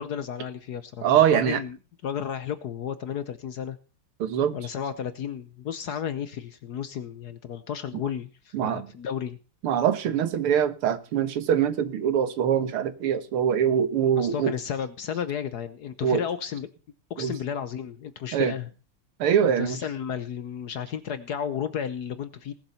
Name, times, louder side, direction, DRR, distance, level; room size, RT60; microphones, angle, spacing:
voice 1, 0.0-1.8 2.0-3.8 4.5-9.4 14.2-16.7 17.1-18.7 19.4-22.5, left 8 dB, 60° left, 1.1 m, -33 dB
voice 2, 1.0-1.6 4.2-4.5 8.5-8.9 9.6-14.5 16.0-16.3 17.2-17.4 18.3-18.6 19.2-19.8, right 9 dB, 85° right, 2.1 m, -23 dB
19.0 x 7.4 x 5.6 m
omnidirectional pair, 2.4 m